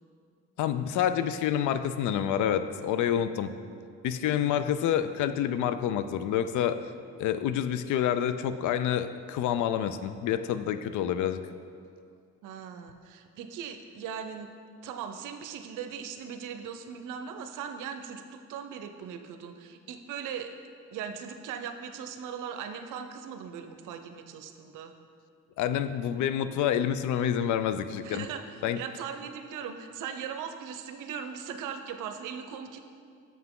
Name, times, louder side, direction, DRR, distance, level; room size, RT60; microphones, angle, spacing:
voice 1, 0.6-3.5 4.0-6.8 7.2-11.4 25.6-28.3 28.6-28.8, left 9 dB, 75° left, 11 dB, 0.5 m, -28 dB
voice 2, 12.4-14.5 14.8-20.5 20.9-24.9 28.0-32.8, right 7 dB, 85° right, 7 dB, 0.6 m, -39 dB
7.2 x 5.9 x 3.7 m, 2.2 s
cardioid pair, 90°, 30 cm